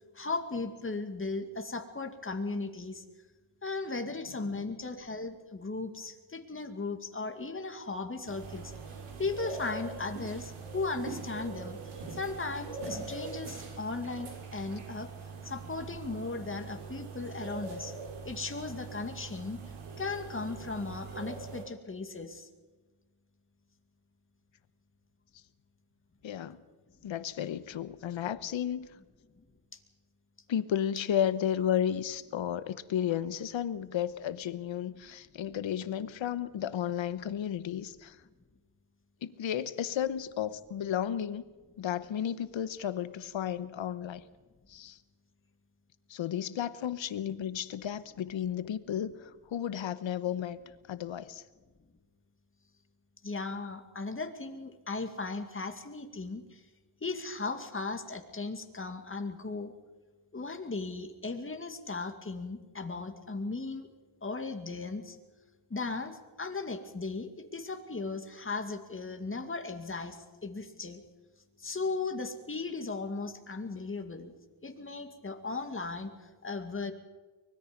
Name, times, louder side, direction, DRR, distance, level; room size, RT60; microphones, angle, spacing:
voice 1, 0.1-3.0 3.6-8.7 9.2-11.8 12.1-15.1 15.4-17.9 18.2-19.6 20.0-22.5 29.7-29.8 53.2-56.6 57.0-59.7 60.3-63.9 64.2-65.2 65.7-71.0 71.6-74.3 74.6-76.9, left 3 dB, 25° left, 6 dB, 2.3 m, -37 dB
voice 2, 4.3-4.6 26.2-26.6 27.0-28.9 30.5-38.2 39.2-41.4 41.8-44.2 44.7-45.0 46.1-50.6 50.9-51.4, left 9 dB, 65° left, 14 dB, 1.2 m, -33 dB
sound 1, 8.2-21.6, right 4 dB, 80° right, 4.9 m, -42 dB
24.0 x 20.5 x 5.3 m, 1.3 s
cardioid pair, 90°, 50 cm